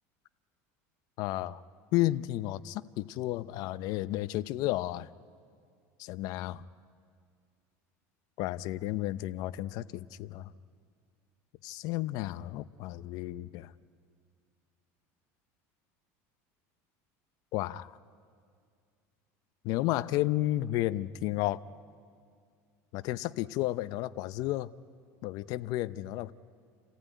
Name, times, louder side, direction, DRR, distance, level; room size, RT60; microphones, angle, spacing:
voice 1, 1.2-1.6 1.9-5.1 6.0-6.6 8.4-10.5 11.6-13.7 17.5-18.0 19.6-21.6 22.9-24.7 25.2-26.3, left 16 dB, 60° left, 14 dB, 0.6 m, -32 dB
28.5 x 15.0 x 9.2 m, 2.2 s
supercardioid pair, 130°, 7 cm